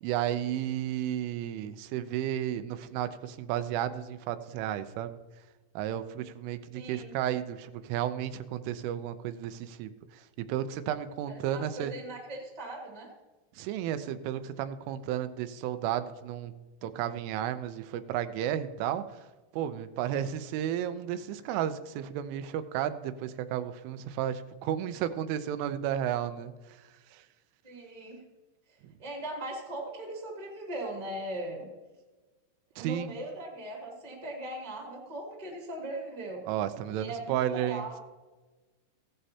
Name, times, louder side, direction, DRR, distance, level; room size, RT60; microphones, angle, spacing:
voice 1, 0.0-5.2 5.8-11.9 13.6-19.2 19.5-26.8 27.1-27.2 28.8-28.9 32.8-33.1 36.5-38.0, right 11 dB, 85° right, 11 dB, 3.2 m, -33 dB
voice 2, 6.7-7.1 11.3-13.1 27.6-28.2 29.0-31.7 32.7-36.4 36.8-38.0, right 1 dB, 15° right, -2 dB, 1.2 m, -39 dB
16.5 x 11.0 x 2.8 m, 1.2 s
omnidirectional pair, 5.6 m